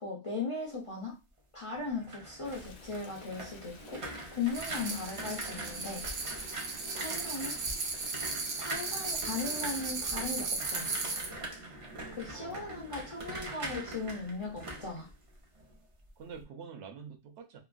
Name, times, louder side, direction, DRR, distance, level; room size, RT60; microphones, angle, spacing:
voice 1, 0.0-1.1 1.5-4.0 4.3-6.1 6.9-7.6 8.6-10.9 12.1-15.1, left 4 dB, 50° left, -2 dB, 0.3 m, -38 dB
sound 1, 1.7-15.7 16.1-16.4, right 2 dB, 45° right, 0.4 m, -43 dB
Stream, 2.4-8.3, left 4 dB, 85° left, 1.0 m, -53 dB
sound 2, 4.5-11.3, right 3 dB, 85° right, 1.2 m, -36 dB
voice 2, 12.3-12.8 16.2-17.6, right 6 dB, 65° right, 3 dB, 0.8 m, -47 dB
3.0 x 2.3 x 2.4 m, 0.28 s
omnidirectional pair, 1.4 m